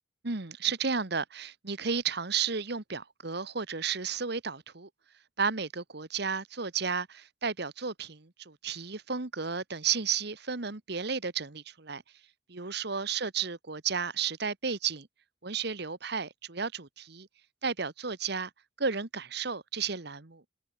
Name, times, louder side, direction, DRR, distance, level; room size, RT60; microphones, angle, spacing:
voice 1, 0.2-4.9 5.4-12.0 12.5-15.1 15.4-17.3 17.6-18.5 18.8-20.4, right 6 dB, 60° right, 1.5 m, -33 dB
open air
head